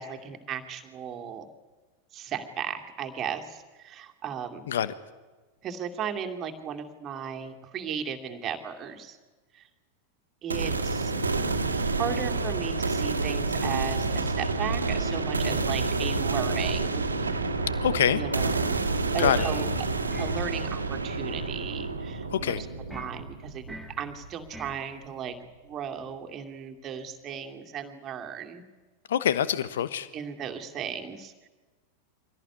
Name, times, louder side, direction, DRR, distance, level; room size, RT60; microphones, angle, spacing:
voice 1, 0.0-1.5 2.1-4.7 5.6-9.2 9.5-9.7 10.4-11.1 11.9-17.1 18.1-18.5 19.1-19.7 20.2-25.4 25.6-28.6 30.1-31.5, right 8 dB, 30° right, 4 dB, 2.5 m, -36 dB
sound 1, 10.5-24.4, right 3 dB, 75° right, 1.9 m, -29 dB
voice 2, 17.8-18.2 19.2-19.5 22.3-22.6 29.1-30.1, left 9 dB, 60° left, 15 dB, 1.1 m, -25 dB
sound 2, 19.4-19.7 20.1-20.5 22.9-23.2 23.7-24.0 24.5-24.8, left 1 dB, ahead, 2.4 m, -42 dB
25.0 x 17.5 x 9.7 m, 1.3 s
figure-of-eight pair, 90°, 0 cm